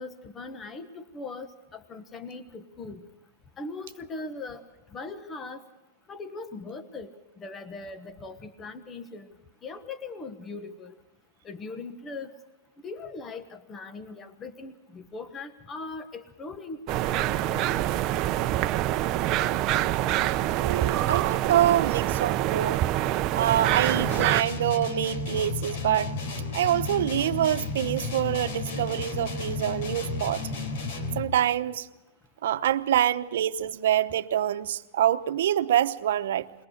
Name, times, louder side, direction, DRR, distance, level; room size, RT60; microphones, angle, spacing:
voice 1, 0.0-3.0 3.6-4.6 4.9-5.6 6.1-7.1 7.4-9.3 9.6-10.9 11.4-12.3 12.8-18.0, left 3 dB, 20° left, 1.3 m, -40 dB
sound 1, 16.9-24.4, right 14 dB, 35° right, 0.7 m, -26 dB
voice 2, 20.6-22.8 23.3-26.1 26.5-30.5 31.2-31.9 32.4-36.5, right 11 dB, 75° right, 0.9 m, -26 dB
sound 2, 23.8-31.4, left 3 dB, 65° left, 3.9 m, -33 dB
22.5 x 19.0 x 6.6 m
supercardioid pair, 145°, 0 cm